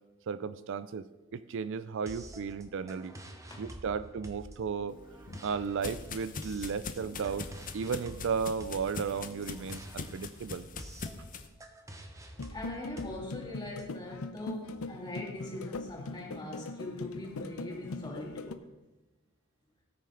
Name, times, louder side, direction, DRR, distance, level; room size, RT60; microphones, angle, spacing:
voice 1, 0.3-1.1 1.3-3.1 3.6-5.0 5.4-7.5 7.7-10.6, right 6 dB, 60° right, 14 dB, 0.4 m, -34 dB
sound 1, 2.1-13.8, right 1 dB, 15° right, 1.0 m, -49 dB
sound 2, 4.9-11.5, left 4 dB, 40° left, 0.8 m, -43 dB
sound 3, 12.4-18.6, left 3 dB, 80° left, 0.6 m, -41 dB
voice 2, 12.5-18.6, left 1 dB, 20° left, -2 dB, 2.5 m, -41 dB
17.5 x 6.3 x 3.9 m, 1.1 s
head